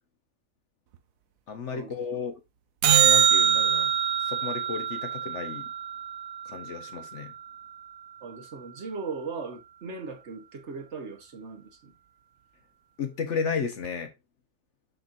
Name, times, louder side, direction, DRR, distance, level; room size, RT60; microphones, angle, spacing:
voice 1, 1.5-2.4 3.0-3.9 4.3-5.7 6.5-7.3 13.0-14.1, left 6 dB, 55° left, 1.2 m, -33 dB
sound 1, 2.8-7.3 13.8-13.9, right 8 dB, 75° right, 1.1 m, -24 dB
voice 2, 8.2-11.9, right 4 dB, 55° right, 1.3 m, -38 dB
6.7 x 5.9 x 2.5 m
omnidirectional pair, 1.5 m